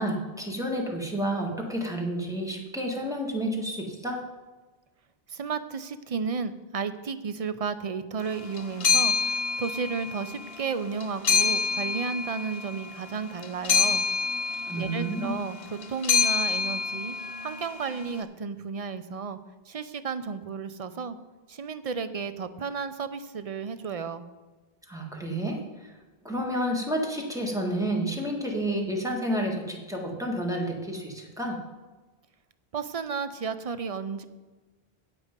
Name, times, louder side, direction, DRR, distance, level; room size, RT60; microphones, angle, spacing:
voice 1, 0.0-4.2 14.6-15.3 24.9-25.9 26.2-31.6, right 1 dB, 5° right, -1 dB, 1.6 m, -30 dB
voice 2, 5.3-14.1 14.7-17.1 17.4-19.4 19.7-21.2 21.5-24.2 32.7-34.2, right 5 dB, 45° right, 11 dB, 0.5 m, -33 dB
sound 1, 8.2-18.2, left 5 dB, 70° left, 1.1 m, -27 dB
9.3 x 8.2 x 5.1 m, 1.2 s
omnidirectional pair, 1.1 m